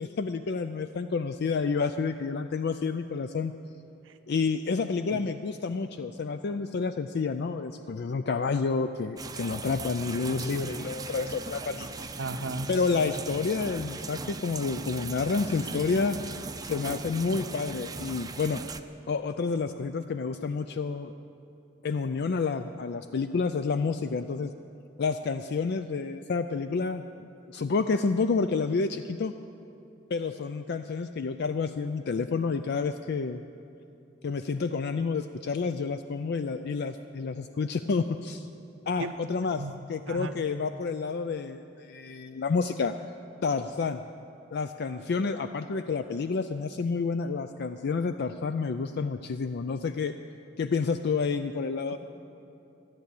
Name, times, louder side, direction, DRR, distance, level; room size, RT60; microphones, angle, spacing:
voice 1, 0.0-3.5 4.3-12.2 12.7-16.2 16.6-18.6 19.1-21.1 21.8-24.5 25.0-27.0 27.5-29.3 30.1-33.4 34.2-38.5 38.9-39.6 39.9-42.9 43.4-44.0 44.5-50.1 50.6-52.0, left 4 dB, 60° left, 9 dB, 0.4 m, -29 dB
sound 1, 9.2-18.8, right 3 dB, 20° right, 0.5 m, -38 dB
voice 2, 12.2-12.7 39.0-39.1 39.6-39.7 40.1-40.4 45.1-45.3, right 2 dB, 70° right, 9 dB, 0.7 m, -35 dB
14.0 x 10.5 x 8.4 m, 2.8 s
head